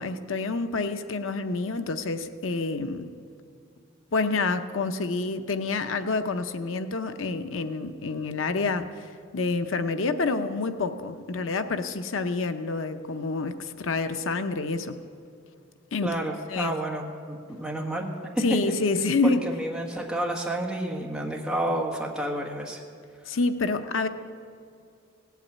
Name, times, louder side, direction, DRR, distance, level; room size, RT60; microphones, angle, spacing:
voice 1, 0.0-3.1 4.1-15.0 15.9-16.1 16.5-16.7 18.4-19.4 23.3-24.1, left 3 dB, 80° left, 9 dB, 0.7 m, -28 dB
voice 2, 16.0-18.0 18.3-18.6 19.2-22.8, right 1 dB, 5° right, -1 dB, 1.5 m, -30 dB
17.5 x 8.3 x 8.5 m, 2.4 s
head